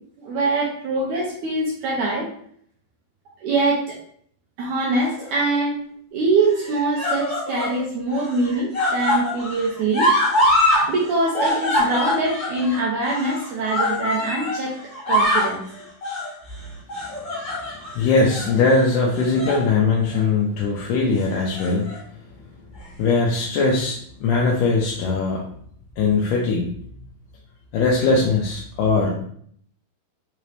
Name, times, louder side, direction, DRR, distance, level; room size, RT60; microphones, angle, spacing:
voice 1, 0.2-2.3 3.4-4.0 4.6-5.8 6.1-10.1 10.9-14.8 15.1-15.6, right 2 dB, 75° right, -3 dB, 1.8 m, -23 dB
sound 1, 5.0-5.6 6.5-7.8 8.1-10.9 11.1-14.6 14.9-15.6 16.0-16.3 16.9-17.9 18.3-18.5 19.2-19.7 20.0-20.2 21.3-22.0 22.8-22.9, left 1 dB, 40° left, 1.4 m, -23 dB
voice 2, 18.0-21.9 23.0-25.5 26.0-26.7 27.7-29.2, left 3 dB, 80° left, -2 dB, 1.9 m, -20 dB
6.0 x 2.8 x 3.2 m, 0.62 s
omnidirectional pair, 4.4 m